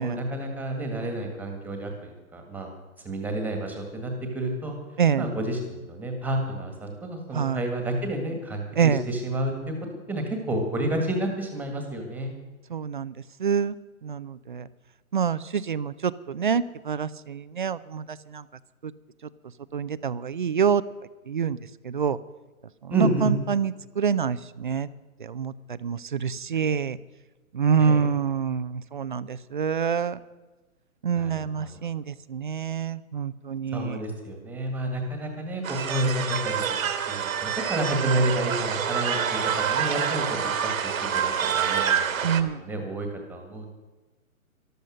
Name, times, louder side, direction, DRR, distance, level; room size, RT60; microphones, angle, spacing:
voice 1, 0.0-2.7 3.0-4.7 5.2-9.7 10.1-12.3 22.9-23.3 27.8-28.0 31.1-31.7 33.7-36.6 37.1-39.2 39.6-42.0 42.6-43.7, right 1 dB, 5° right, 3 dB, 1.7 m, -30 dB
voice 2, 12.7-13.8 14.0-14.7 15.1-18.4 18.8-18.9 19.7-20.8 21.3-21.6 21.8-22.2 22.8-24.9 25.2-27.0 27.5-30.2 31.0-34.0 42.2-42.6, right 7 dB, 40° right, 16 dB, 0.4 m, -26 dB
sound 1, 35.6-42.4, right 8 dB, 70° right, 1.5 m, -27 dB
13.5 x 12.5 x 6.3 m, 1.2 s
hypercardioid pair, 155°, 42 cm